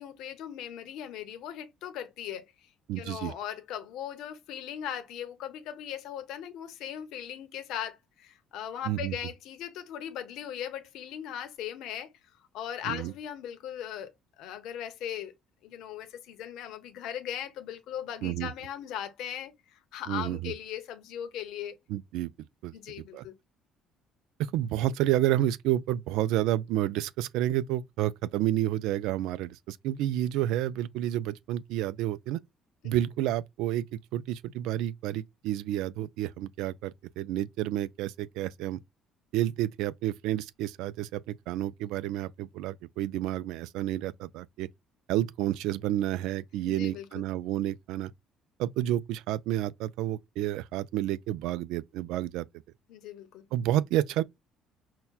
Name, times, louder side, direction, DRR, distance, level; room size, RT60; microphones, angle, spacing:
voice 1, 0.0-2.7 3.0-12.1 12.5-14.1 14.4-15.3 15.6-21.8 22.7-23.3 46.6-47.2 52.9-53.4, left 10 dB, 70° left, 0.8 m, -39 dB
voice 2, 2.9-3.3 8.9-9.2 12.9-13.1 18.2-18.5 20.1-20.5 21.9-22.3 22.6-22.7 23.1-23.2 24.4-32.4 32.8-38.8 39.3-44.7 45.1-48.1 48.6-52.5 53.5-54.2, right 13 dB, 85° right, 0.3 m, -30 dB
5.6 x 2.2 x 2.3 m
cardioid pair, 155°, 0 cm